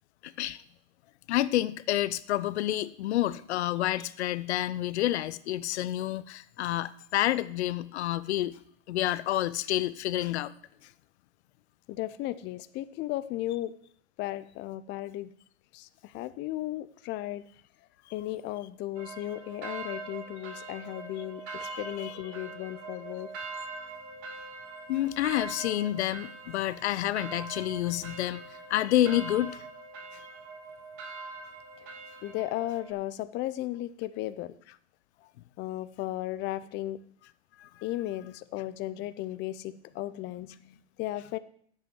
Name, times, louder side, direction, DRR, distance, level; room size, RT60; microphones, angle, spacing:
voice 1, 0.2-0.6 1.3-8.6 8.9-10.5 21.6-22.1 24.9-29.6 37.6-37.7, left 14 dB, 75° left, 16 dB, 0.7 m, -29 dB
voice 2, 11.9-13.7 14.2-15.3 15.7-17.4 18.1-23.3 31.8-31.9 32.2-34.5 35.6-37.0 37.8-41.4, left 15 dB, 35° left, 13 dB, 0.6 m, -35 dB
sound 1, 19.0-32.9, right 3 dB, 50° right, 3.6 m, -42 dB
8.8 x 8.0 x 8.0 m, 0.63 s
hypercardioid pair, 120°, 34 cm